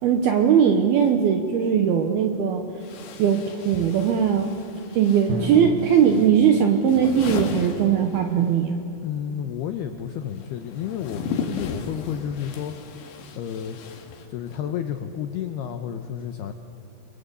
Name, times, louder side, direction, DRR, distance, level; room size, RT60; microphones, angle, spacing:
voice 1, 0.0-2.6 3.2-4.5 4.9-8.8, right 8 dB, 75° right, 5 dB, 2.3 m, -20 dB
sound 1, 1.9-2.0 2.8-8.6 8.9-14.7, left 5 dB, 70° left, 4.1 m, -36 dB
Drum, 5.3-9.1, right 1 dB, 50° right, 7.7 m, -35 dB
voice 2, 9.0-12.7 13.3-13.8 14.3-16.5, left 9 dB, 85° left, 7 dB, 2.3 m, -31 dB
29.5 x 22.5 x 8.4 m, 2.6 s
omnidirectional pair, 5.9 m